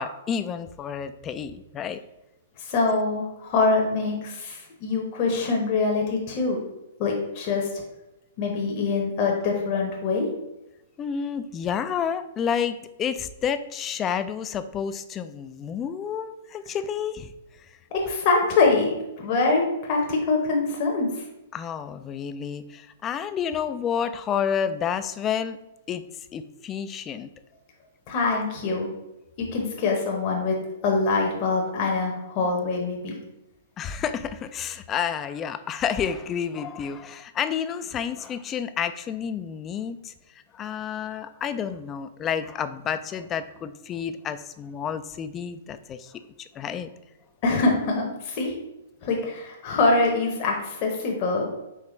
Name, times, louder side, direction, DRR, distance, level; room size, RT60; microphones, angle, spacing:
voice 1, 0.0-2.0 11.0-17.7 21.5-25.6 25.9-27.3 33.8-40.1 40.5-46.9, left 7 dB, 25° left, 11 dB, 0.3 m, -30 dB
voice 2, 2.6-6.6 7.0-7.8 8.4-10.3 17.9-21.2 28.1-28.9 29.5-30.6 30.8-33.1 47.4-48.5 49.0-51.5, left 3 dB, 45° left, 0 dB, 0.9 m, -24 dB
4.8 x 3.2 x 3.1 m, 0.96 s
hypercardioid pair, 115°, 0 cm